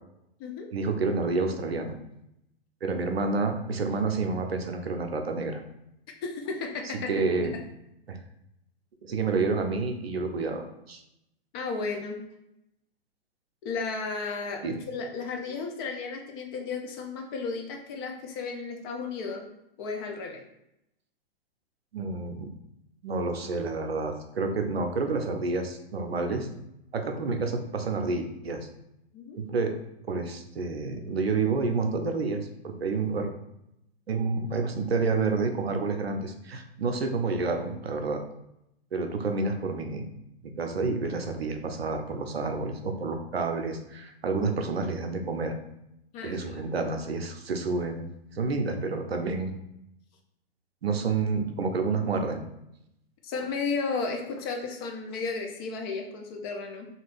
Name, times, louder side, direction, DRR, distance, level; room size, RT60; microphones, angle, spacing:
voice 1, 0.7-2.0 2.8-5.6 7.1-7.5 8.1-8.2 9.0-11.0 14.6-14.7 21.9-22.5 23.0-26.5 26.9-28.7 29.4-29.7 30.1-33.3 34.1-38.2 38.9-40.1 40.6-45.5 46.2-49.5 50.8-52.4, right 4 dB, 85° right, 5 dB, 0.6 m, -29 dB
voice 2, 6.2-7.2 11.5-12.2 13.6-19.5 19.8-20.4 29.1-29.4 46.1-46.4 53.2-56.9, left 4 dB, 25° left, 3 dB, 0.4 m, -33 dB
2.8 x 2.5 x 3.3 m, 0.83 s
figure-of-eight pair, 115°, 30 cm